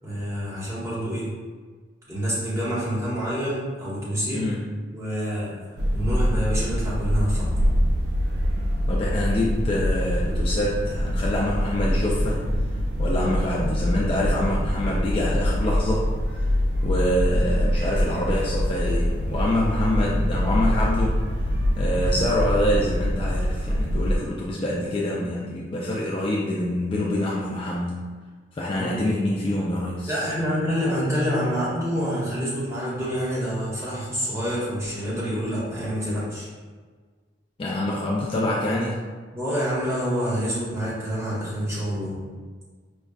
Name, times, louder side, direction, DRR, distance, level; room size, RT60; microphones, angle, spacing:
voice 1, 0.0-1.3 2.1-4.5 4.9-5.6 5.9-7.5 28.8-29.1 30.1-36.5 39.3-42.2, equal, 15° right, -9 dB, 1.0 m, -27 dB
voice 2, 4.3-4.6 8.9-12.4 13.0-16.1 16.8-21.2 21.8-28.0 28.5-30.3 37.6-39.0, left 1 dB, 30° left, -5 dB, 0.3 m, -26 dB
sound 1, 5.8-24.2, equal, 55° right, 0.4 m, -24 dB
5.1 x 2.3 x 2.3 m, 1.5 s
head